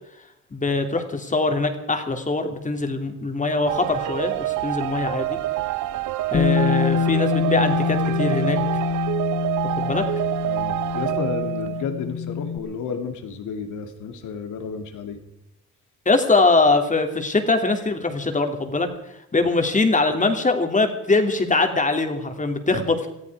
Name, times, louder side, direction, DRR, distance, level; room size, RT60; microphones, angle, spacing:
voice 1, 0.5-5.4 6.3-8.6 9.8-10.0 16.0-18.9 19.3-23.1, left 3 dB, 25° left, 6 dB, 2.9 m, -22 dB
sound 1, 3.7-11.8, right 16 dB, 75° right, 0.8 m, -27 dB
Bass guitar, 6.3-12.6, left 7 dB, 40° left, 1.2 m, -25 dB
voice 2, 10.4-15.2 19.4-19.5, left 6 dB, 80° left, 6 dB, 2.6 m, -32 dB
19.5 x 14.0 x 4.8 m, 0.88 s
cardioid pair, 90°, 30 cm